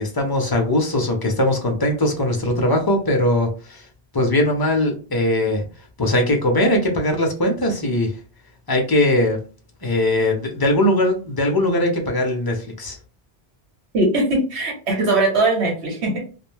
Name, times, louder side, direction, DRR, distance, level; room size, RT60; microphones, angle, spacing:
voice 1, 0.0-3.8 4.1-5.6 6.0-8.1 8.7-9.4 9.8-13.0, left 1 dB, 30° left, 2 dB, 0.4 m, -20 dB
voice 2, 13.9-16.2, right 2 dB, 85° right, 0 dB, 1.3 m, -20 dB
2.4 x 2.1 x 3.1 m, 0.37 s
omnidirectional pair, 1.1 m